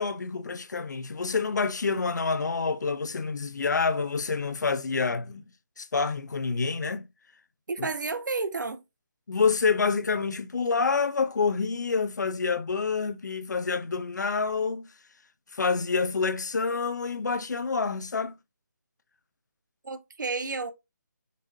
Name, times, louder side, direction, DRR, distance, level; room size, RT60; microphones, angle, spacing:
voice 1, 0.0-5.4 5.8-7.1 7.8-7.9 9.3-14.9 15.5-18.3, left 4 dB, 70° left, 0.7 m, -27 dB
voice 2, 7.7-8.8 19.8-20.7, right 4 dB, 75° right, 0.8 m, -31 dB
5.3 x 3.3 x 2.7 m
figure-of-eight pair, 160°, 10 cm